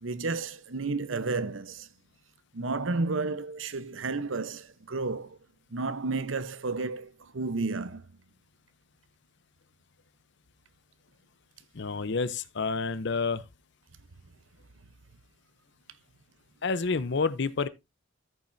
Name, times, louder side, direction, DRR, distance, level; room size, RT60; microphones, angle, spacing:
voice 1, 0.0-1.9 2.5-5.4 5.7-8.0, right 3 dB, 75° right, 0.8 m, -32 dB
voice 2, 11.7-13.4 16.6-17.7, left 4 dB, 60° left, 0.7 m, -29 dB
13.5 x 7.5 x 2.6 m
head